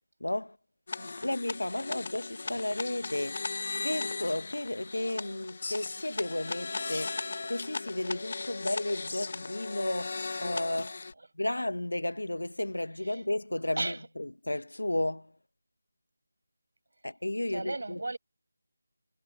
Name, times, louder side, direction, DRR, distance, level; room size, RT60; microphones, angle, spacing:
voice 1, 0.2-0.6 1.2-3.5 3.8-11.0 11.3-15.3 17.0-18.0, left 1 dB, 85° left, 1.2 m, -33 dB
sound 1, 0.9-11.1, left 3 dB, 50° left, 1.3 m, -37 dB
voice 2, 1.0-1.3 11.2-11.3 13.0-13.2 13.8-14.1 17.5-18.2, right 2 dB, 70° right, 6.9 m, -36 dB
figure-of-eight pair, 165°, 0 cm